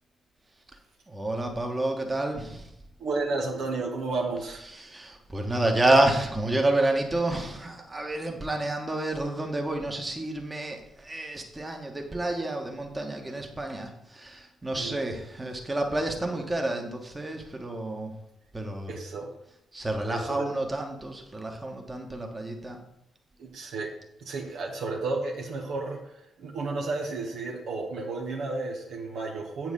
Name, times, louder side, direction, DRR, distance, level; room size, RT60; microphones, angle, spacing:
voice 1, 1.1-2.7 4.7-18.1 18.5-18.9 19.7-22.8, right 2 dB, 20° right, 2 dB, 1.6 m, -29 dB
voice 2, 3.0-4.6 14.8-15.0 18.9-19.3 20.1-20.5 23.4-23.9 24.2-26.0 26.4-29.7, right 3 dB, 60° right, -1 dB, 1.4 m, -32 dB
8.2 x 4.7 x 5.5 m, 0.81 s
figure-of-eight pair, 40°, 0 cm